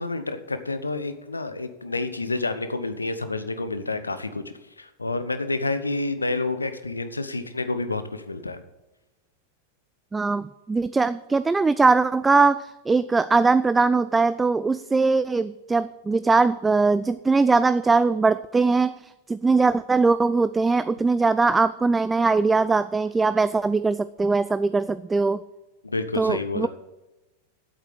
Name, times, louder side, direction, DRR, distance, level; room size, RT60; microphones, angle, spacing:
voice 1, 0.0-4.4 4.8-8.6 25.8-26.7, left 3 dB, 80° left, 11 dB, 1.0 m, -29 dB
voice 2, 10.1-25.4 26.2-26.7, right 4 dB, 10° right, 14 dB, 0.3 m, -21 dB
8.3 x 8.1 x 7.9 m, 1.0 s
figure-of-eight pair, 90°, 0 cm